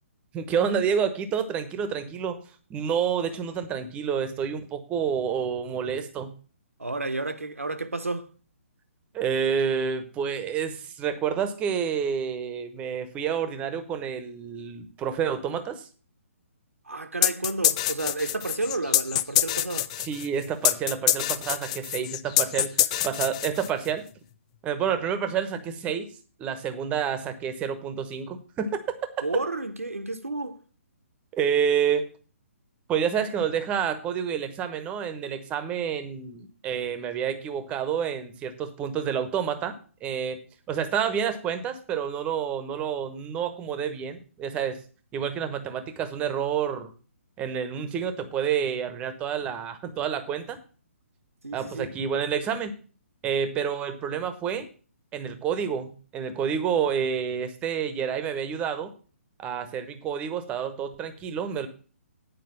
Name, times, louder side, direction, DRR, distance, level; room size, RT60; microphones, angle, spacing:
voice 1, 0.3-2.4 2.7-6.3 9.1-15.9 20.0-24.0 24.6-26.1 26.4-28.8 31.3-32.1 32.9-39.7 40.0-40.4 40.7-44.8 45.1-46.9 47.4-50.6 51.5-52.7 53.2-54.7 55.1-58.9 59.4-61.7, right 7 dB, 15° right, 1.0 m, -29 dB
voice 2, 6.8-8.3 16.8-19.9 29.2-30.6 51.4-51.9, right 2 dB, 75° right, 1.1 m, -31 dB
sound 1, 17.2-23.9, left 13 dB, 25° left, 0.4 m, -25 dB
9.4 x 5.0 x 7.5 m
figure-of-eight pair, 130°, 8 cm